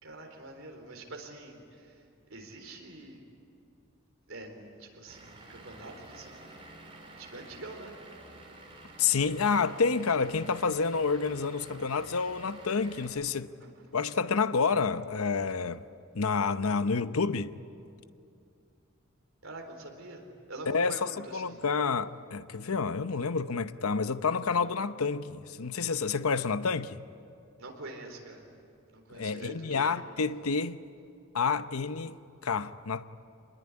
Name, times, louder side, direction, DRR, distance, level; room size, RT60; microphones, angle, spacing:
voice 1, 0.0-2.0 2.3-3.2 4.3-6.6 7.2-7.9 13.6-13.7 19.4-21.6 27.6-28.4 28.9-29.9, right 2 dB, 65° right, 4.1 m, -45 dB
Vehicle / Engine, 5.1-13.1, right 2 dB, 25° right, 4.0 m, -50 dB
voice 2, 9.0-13.5 13.9-15.8 16.1-17.5 20.7-27.0 29.1-30.8 31.3-33.0, left 5 dB, 80° left, 0.8 m, -29 dB
26.0 x 20.5 x 9.7 m
head